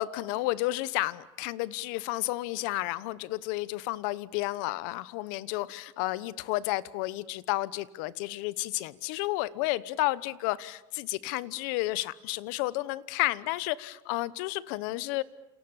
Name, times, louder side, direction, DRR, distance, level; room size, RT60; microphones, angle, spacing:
voice 1, 0.0-15.2, left 18 dB, 80° left, 19 dB, 1.0 m, -31 dB
29.0 x 28.0 x 7.2 m, 0.92 s
cardioid pair, 160°, 11 cm